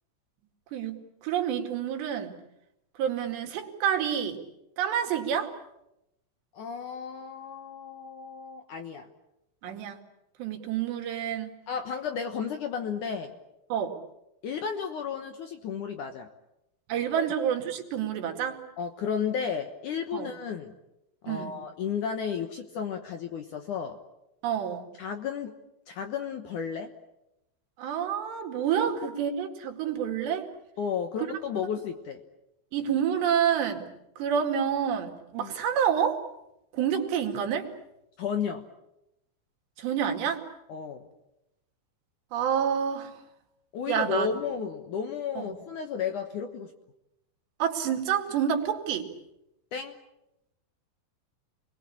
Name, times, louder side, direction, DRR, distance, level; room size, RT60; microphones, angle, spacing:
voice 1, 0.7-2.4 3.0-4.4 4.8-5.5 9.6-10.0 10.4-11.6 13.7-14.0 16.9-18.6 20.1-20.3 21.3-21.5 24.4-24.9 27.8-30.5 31.2-31.7 32.7-33.9 34.2-36.2 36.7-37.7 39.8-40.4 42.3-43.2 43.9-44.3 45.4-45.6 47.6-49.1, right 8 dB, 75° right, 3 dB, 4.4 m, -28 dB
voice 2, 6.5-9.1 11.7-13.3 14.4-16.3 17.2-17.3 18.8-20.7 21.2-24.0 25.0-25.5 25.9-26.9 30.8-32.2 35.4-35.5 38.2-38.6 40.7-41.1 43.7-46.7 49.7-50.0, left 7 dB, 65° left, 6 dB, 2.1 m, -33 dB
28.5 x 21.0 x 8.6 m, 0.88 s
omnidirectional pair, 5.0 m